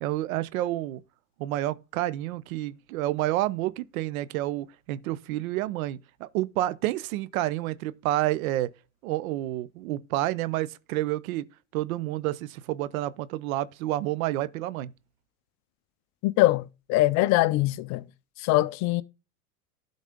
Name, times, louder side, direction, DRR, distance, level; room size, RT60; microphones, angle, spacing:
voice 1, 0.0-1.0 1.4-8.7 9.0-11.4 11.7-14.9, right 15 dB, 65° right, 0.8 m, -29 dB
voice 2, 16.2-18.0 18.4-19.0, left 17 dB, 40° left, 0.5 m, -23 dB
12.0 x 4.1 x 5.1 m
hypercardioid pair, 110°, 45 cm